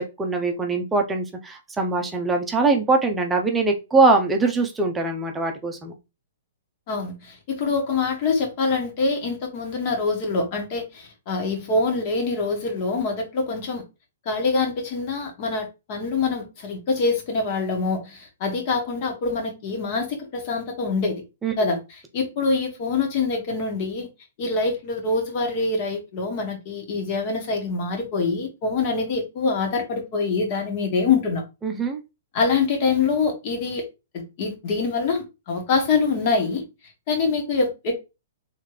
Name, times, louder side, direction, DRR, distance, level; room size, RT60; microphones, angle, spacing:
voice 1, 0.0-5.9 21.4-21.5 31.6-32.0, right 3 dB, 10° right, 0.7 m, -22 dB
voice 2, 6.9-13.8 14.2-21.2 21.6-24.1 24.4-31.4 32.3-33.8 34.1-36.6 37.1-37.9, left 4 dB, 45° left, 1.7 m, -25 dB
3.6 x 3.2 x 3.3 m
hypercardioid pair, 135°, 0 cm